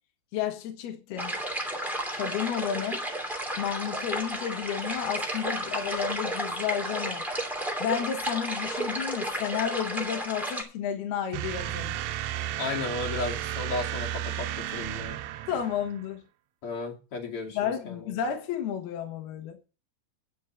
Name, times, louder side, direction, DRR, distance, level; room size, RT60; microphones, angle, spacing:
voice 1, 0.3-1.3 2.1-3.0 3.6-7.2 7.8-12.0 15.5-16.2 17.5-19.6, left 9 dB, 70° left, 3.1 m, -32 dB
sound 1, 1.2-10.6, right 1 dB, ahead, 1.4 m, -32 dB
sound 2, 11.3-16.0, right 12 dB, 80° right, 2.8 m, -33 dB
voice 2, 12.6-15.2 16.6-17.9, left 3 dB, 40° left, 2.7 m, -34 dB
10.0 x 6.2 x 7.3 m
omnidirectional pair, 5.1 m